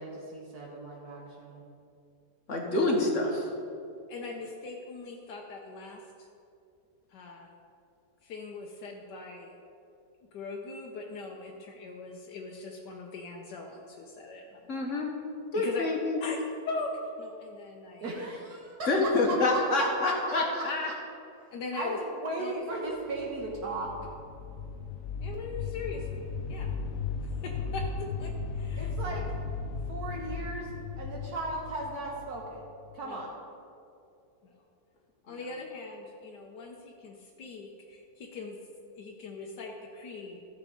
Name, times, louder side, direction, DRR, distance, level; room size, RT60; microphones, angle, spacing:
voice 1, 0.0-1.6 18.0-18.9 19.3-21.0 21.7-23.9 28.8-29.2 29.9-30.7 31.0-33.3, right 2 dB, 65° right, -2 dB, 1.7 m, -37 dB
voice 2, 2.5-3.5 14.7-15.1 15.5-16.2 18.9-20.9 35.3-35.4, left 2 dB, 50° left, 0 dB, 1.6 m, -27 dB
voice 3, 4.1-6.3 7.1-7.5 8.2-9.6 10.3-14.7 15.5-15.9 16.2-16.4 16.6-16.9 17.2-18.0 21.5-22.0 22.4-22.5 25.2-26.7 27.4-28.9 33.0-33.2 34.4-34.5 35.2-38.6 38.9-40.5, left 3 dB, 80° left, 0 dB, 1.5 m, -40 dB
sound 1, 23.1-33.0, left 4 dB, 65° left, 0.9 m, -36 dB
14.0 x 6.5 x 5.1 m, 2.6 s
omnidirectional pair, 1.8 m